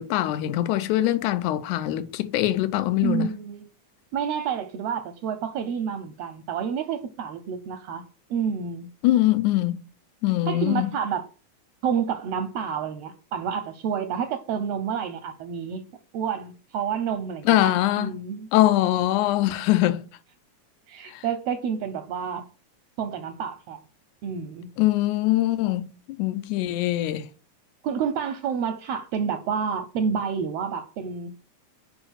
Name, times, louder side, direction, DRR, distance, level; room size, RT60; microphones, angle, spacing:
voice 1, 0.0-3.3 9.0-9.8 10.2-10.9 17.5-18.1 18.5-20.0 24.8-25.9 26.2-27.3, left 15 dB, 85° left, 2.1 m, -22 dB
voice 2, 3.0-3.7 4.1-8.0 8.3-8.9 10.5-11.2 11.8-15.8 16.1-18.5 20.9-22.4 23.0-23.8 24.2-24.7 27.8-31.3, right 7 dB, 75° right, 1.5 m, -29 dB
5.0 x 4.7 x 6.3 m
omnidirectional pair, 3.5 m